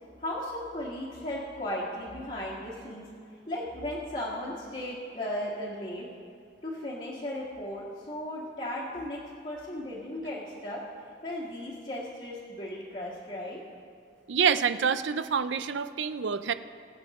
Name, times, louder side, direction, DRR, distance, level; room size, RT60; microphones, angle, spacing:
voice 1, 0.2-3.1 3.5-6.1 6.6-10.8 11.2-13.6, left 1 dB, 40° left, -7 dB, 1.8 m, -36 dB
voice 2, 14.3-16.5, right 6 dB, 85° right, 12 dB, 0.5 m, -27 dB
23.0 x 7.9 x 3.1 m, 2.6 s
head